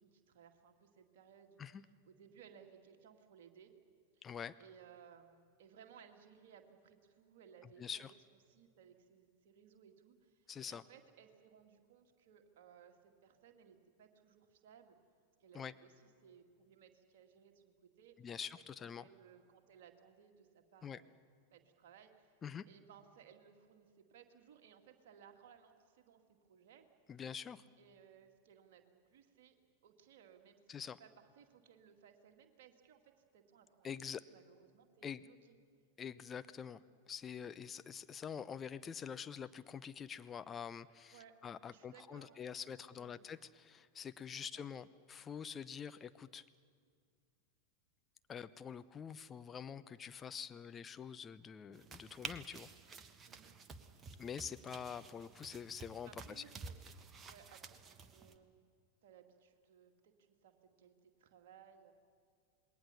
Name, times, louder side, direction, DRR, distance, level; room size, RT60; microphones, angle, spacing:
voice 1, 0.0-3.7 4.1-4.3 4.6-15.0 15.4-21.1 21.5-22.3 22.7-26.9 27.8-29.6 29.8-30.7 31.0-35.6 41.1-41.4 41.7-43.2 44.3-44.7 53.3-53.6 56.0-56.8 57.2-58.6 59.0-61.9, right 8 dB, 55° right, 4 dB, 2.2 m, -62 dB
voice 2, 4.2-4.6 7.8-8.1 10.5-10.8 15.5-15.7 18.2-19.1 20.8-21.0 22.4-22.6 27.1-27.6 30.7-31.0 33.8-34.2 35.0-35.3 36.0-36.8 37.1-46.5 48.3-52.7 54.2-56.4, left 7 dB, 20° left, 12 dB, 0.7 m, -46 dB
sound 1, 51.7-58.4, right 4 dB, 25° right, 1.3 m, -51 dB
27.5 x 21.0 x 7.0 m, 2.1 s
figure-of-eight pair, 90°, 0 cm